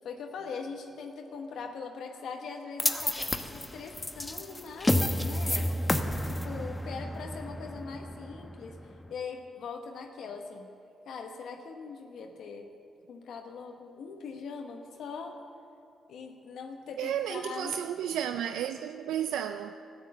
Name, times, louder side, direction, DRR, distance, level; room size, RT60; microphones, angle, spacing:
voice 1, 0.0-5.7 6.2-10.7 11.1-12.7 13.1-15.4 16.1-17.7, left 5 dB, 75° left, 4 dB, 1.0 m, -41 dB
sound 1, 2.8-9.1, left 1 dB, 15° left, 0.9 m, -31 dB
voice 2, 17.0-19.8, right 10 dB, 85° right, 8 dB, 0.4 m, -32 dB
13.0 x 9.2 x 7.7 m, 2.6 s
supercardioid pair, 65°, 0 cm